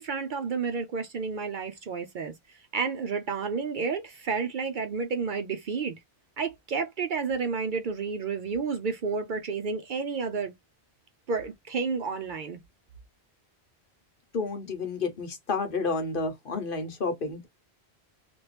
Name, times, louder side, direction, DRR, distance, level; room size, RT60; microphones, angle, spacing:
voice 1, 0.0-5.9 6.4-10.5 11.3-12.6, right 5 dB, 60° right, 0.6 m, -31 dB
voice 2, 14.3-17.5, left 4 dB, 55° left, 1.0 m, -30 dB
2.9 x 2.5 x 3.2 m
omnidirectional pair, 1.1 m